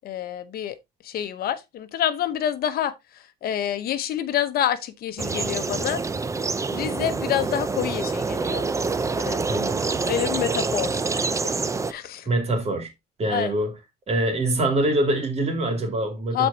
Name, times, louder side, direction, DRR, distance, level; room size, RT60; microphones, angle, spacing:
voice 1, 0.0-0.8 1.0-6.0 6.7-8.6 9.2-9.4 10.0-11.5 11.9-12.3 13.3-13.5 16.3-16.5, left 10 dB, 65° left, 0.9 m, -27 dB
sound 1, 5.2-11.9, right 4 dB, 20° right, 0.6 m, -26 dB
voice 2, 9.5-10.0 12.3-12.9 13.2-13.7 14.1-16.5, right 1 dB, 40° right, 3.0 m, -24 dB
13.0 x 4.5 x 2.8 m
cardioid pair, 110°, 17 cm